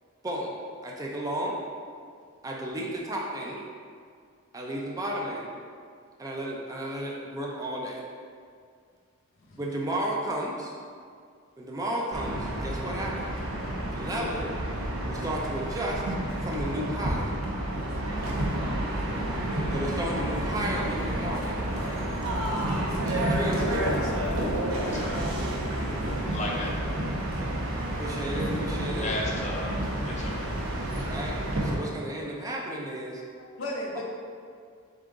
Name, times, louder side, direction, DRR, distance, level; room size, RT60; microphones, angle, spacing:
voice 1, 0.2-0.5 0.8-1.6 2.4-3.6 4.5-5.5 6.2-8.0 9.6-10.7 11.6-13.3 13.9-14.5 15.1-16.0 16.4-17.4 19.7-21.6 23.0-23.9 28.0-29.1 31.1-31.4 31.6-33.2, right 1 dB, 15° right, -2 dB, 0.4 m, -33 dB
sound 1, 12.1-31.7, right 1 dB, 85° right, 0.7 m, -30 dB
voice 2, 24.8-25.4 26.2-26.9 29.0-30.5 30.8-31.1, left 2 dB, 35° left, -1 dB, 0.6 m, -35 dB
voice 3, 27.5-28.0 33.6-34.0, left 1 dB, 70° left, -3 dB, 0.8 m, -39 dB
3.8 x 3.6 x 3.7 m, 2.1 s
head